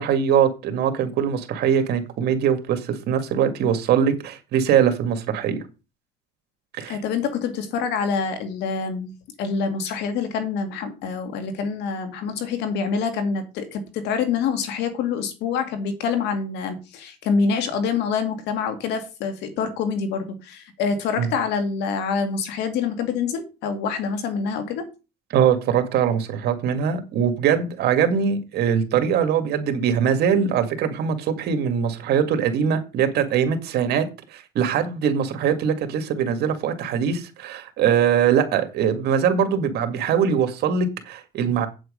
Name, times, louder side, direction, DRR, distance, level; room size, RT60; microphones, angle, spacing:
voice 1, 0.0-5.6 6.8-7.0 21.2-21.3 25.3-34.1 34.3-41.7, right 8 dB, 75° right, 2.1 m, -22 dB
voice 2, 6.9-9.1 9.4-24.9, left 5 dB, 85° left, 2.3 m, -26 dB
8.4 x 7.8 x 5.2 m
cardioid pair, 110°, 17 cm